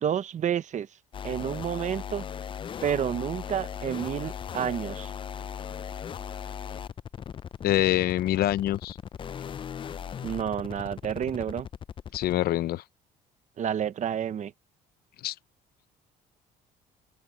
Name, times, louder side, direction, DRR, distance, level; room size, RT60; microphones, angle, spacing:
voice 1, 0.0-0.9 1.2-2.2 2.8-5.1 10.2-11.7 13.6-14.5, right 9 dB, 45° right, 0.9 m, -29 dB
sound 1, 1.1-12.4, left 8 dB, 30° left, 0.4 m, -38 dB
voice 2, 7.6-9.0 12.1-12.8 15.2-15.4, left 14 dB, 65° left, 0.6 m, -25 dB
open air
cardioid pair, 110°, 17 cm